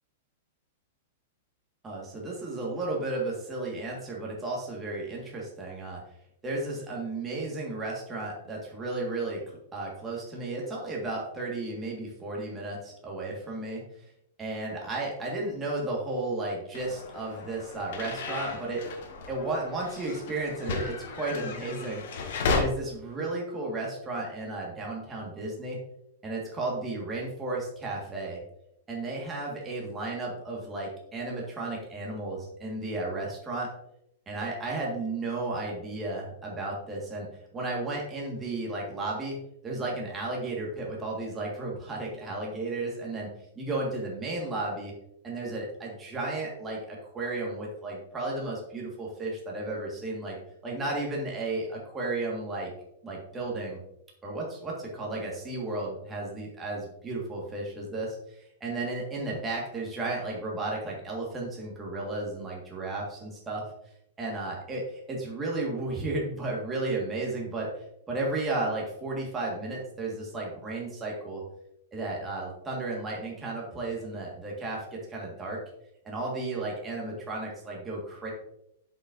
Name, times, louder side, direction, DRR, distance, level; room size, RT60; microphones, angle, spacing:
voice 1, 1.8-6.0 6.4-9.4 9.7-13.8 14.4-18.8 19.3-22.0 22.5-25.8 26.2-28.4 28.9-33.7 34.3-37.3 37.5-39.4 39.6-43.3 43.6-44.9 45.2-50.4 50.6-52.7 53.0-53.8 54.2-63.6 64.2-67.7 68.1-71.4 71.9-75.6 76.1-78.3, right 2 dB, 15° right, -3 dB, 1.8 m, -33 dB
sound 1, 16.7-22.6, left 4 dB, 70° left, 1.5 m, -34 dB
8.4 x 5.4 x 2.7 m, 0.77 s
hypercardioid pair, 140°, 0 cm